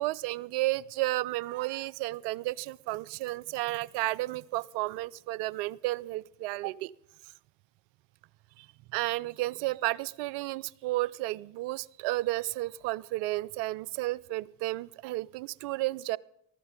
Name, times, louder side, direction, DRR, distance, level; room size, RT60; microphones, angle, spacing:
voice 1, 0.0-6.9 8.6-8.7 8.9-16.2, right 19 dB, 55° right, 22 dB, 0.5 m, -32 dB
14.0 x 12.5 x 5.1 m, 0.75 s
hypercardioid pair, 65°, 50 cm